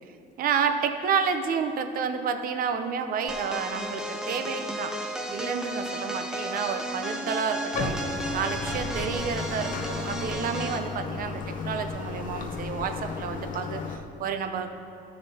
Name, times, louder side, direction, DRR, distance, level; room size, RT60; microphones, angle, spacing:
voice 1, 0.4-4.9 5.3-14.9, right 6 dB, 60° right, 7 dB, 0.7 m, -30 dB
sound 1, 3.3-10.9, equal, 5° right, 0.7 m, -34 dB
Bathtub (filling or washing), 7.7-14.0, left 4 dB, 50° left, 0.8 m, -34 dB
14.0 x 6.6 x 2.8 m, 2.6 s
cardioid pair, 110°, 17 cm